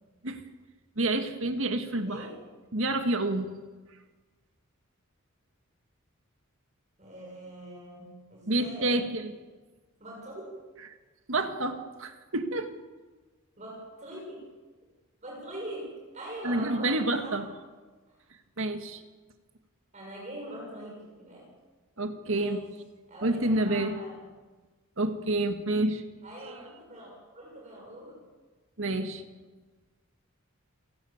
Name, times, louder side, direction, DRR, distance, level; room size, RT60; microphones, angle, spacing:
voice 1, 1.0-2.2 2.7-3.5 8.5-9.3 11.3-12.7 16.4-17.5 18.6-19.0 22.0-22.6 23.2-23.9 25.0-26.0 28.8-29.2, right 2 dB, 65° right, 7 dB, 2.1 m, -28 dB
voice 2, 2.0-2.4 7.0-9.1 10.0-10.6 13.6-14.5 15.2-17.5 18.1-18.3 19.9-21.5 22.3-22.7 23.1-24.3 26.2-28.2, right 1 dB, 35° right, -2 dB, 6.3 m, -43 dB
28.0 x 18.0 x 7.4 m, 1.3 s
head